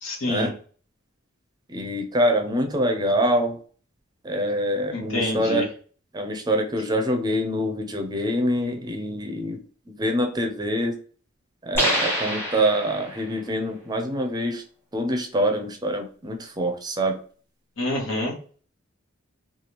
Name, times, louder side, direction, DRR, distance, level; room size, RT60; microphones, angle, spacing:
voice 1, 0.0-0.5 4.9-5.7 17.8-18.3, left 1 dB, 70° left, 0 dB, 1.1 m, -27 dB
voice 2, 1.7-3.6 4.2-5.7 6.1-9.6 9.9-10.9 11.6-14.6 14.9-17.2, equal, 20° right, 4 dB, 0.5 m, -25 dB
sound 1, 11.7-13.3, equal, 10° left, 1.2 m, -26 dB
3.3 x 2.3 x 2.9 m, 0.42 s
head